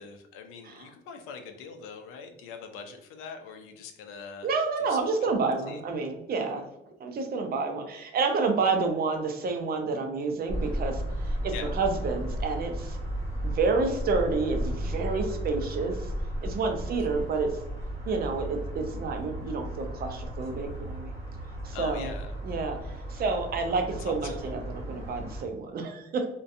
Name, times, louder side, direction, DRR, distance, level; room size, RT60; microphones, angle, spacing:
voice 1, 0.0-4.5 4.8-5.8 11.5-11.7 17.1-17.3 21.7-22.3 24.1-24.5, left 5 dB, 90° left, 6 dB, 0.4 m, -43 dB
voice 2, 4.4-6.7 7.0-13.0 13.4-16.1 16.4-17.5 18.1-21.1 21.6-22.1 22.4-26.3, right 4 dB, 45° right, 5 dB, 0.5 m, -29 dB
sound 1, 10.5-25.4, right 1 dB, 15° left, 1.2 m, -34 dB
2.6 x 2.2 x 2.5 m, 0.84 s
cardioid pair, 105°, 21 cm